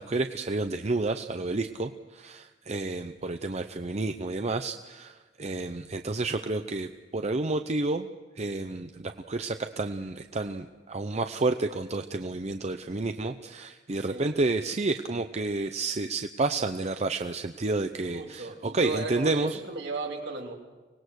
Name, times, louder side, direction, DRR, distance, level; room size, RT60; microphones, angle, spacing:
voice 1, 0.0-8.1 8.4-19.6, right 3 dB, 35° right, 7 dB, 0.7 m, -30 dB
voice 2, 18.1-20.6, right 3 dB, 65° right, 1 dB, 3.3 m, -35 dB
25.0 x 19.5 x 6.5 m, 1.3 s
head